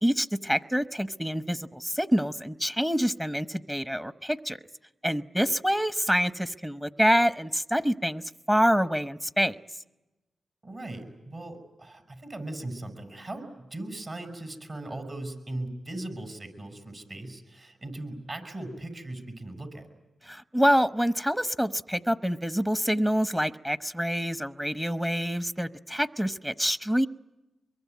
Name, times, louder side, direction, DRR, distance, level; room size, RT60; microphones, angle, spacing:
voice 1, 0.0-4.6 5.0-8.2 8.5-9.6 20.2-27.1, equal, 10° right, 13 dB, 1.0 m, -26 dB
voice 2, 10.6-19.9, right 1 dB, 50° right, 7 dB, 6.7 m, -39 dB
25.0 x 23.0 x 9.4 m, 1.0 s
cardioid pair, 50°, 0 cm